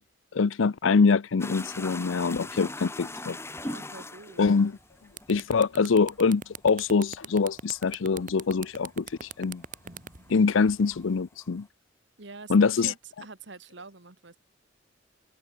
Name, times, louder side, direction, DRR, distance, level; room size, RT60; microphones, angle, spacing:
voice 1, 0.3-3.4 4.4-4.8 5.3-9.6 10.3-11.7 12.5-12.9, left 5 dB, 80° left, 0.5 m, -24 dB
sound 1, 1.4-9.9 10.2-11.6, left 2 dB, 15° left, 2.2 m, -41 dB
voice 2, 3.6-4.4 12.2-14.4, right 3 dB, 60° right, 1.6 m, -45 dB
sound 2, 4.7-4.8 5.1-11.2, right 5 dB, 40° right, 2.9 m, -41 dB
head